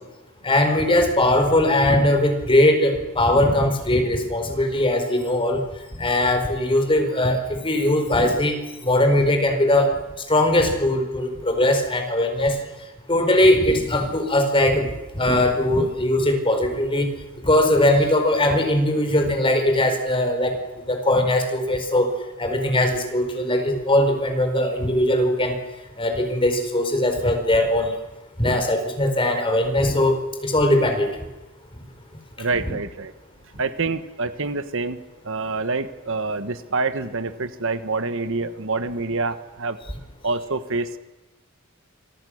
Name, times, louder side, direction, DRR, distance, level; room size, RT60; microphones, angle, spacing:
voice 1, 0.4-5.6 5.9-9.9 10.3-12.6 13.1-17.1 17.4-20.6 20.9-22.1 22.4-25.6 26.0-28.0 28.4-31.1 32.7-32.8, left 1 dB, 25° left, 5 dB, 4.7 m, -20 dB
voice 2, 32.4-33.1 33.5-39.8 40.2-41.0, right 3 dB, 65° right, 11 dB, 1.4 m, -26 dB
27.5 x 24.0 x 6.5 m, 1.1 s
head